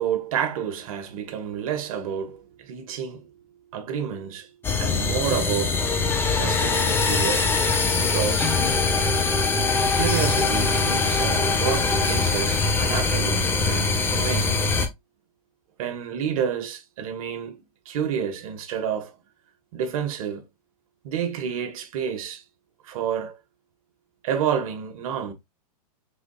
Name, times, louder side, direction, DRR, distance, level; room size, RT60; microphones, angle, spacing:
voice 1, 0.0-3.4 3.7-4.5 4.8-5.8 6.3-8.6 9.9-14.6 15.8-17.6 17.8-19.1 19.7-20.4 21.0-22.4 22.8-23.4 24.2-25.3, right 8 dB, 60° right, 1.3 m, -29 dB
sound 1, 4.6-14.9, left 4 dB, 10° left, 0.7 m, -22 dB
4.8 x 3.7 x 2.3 m
hypercardioid pair, 130°, 20 cm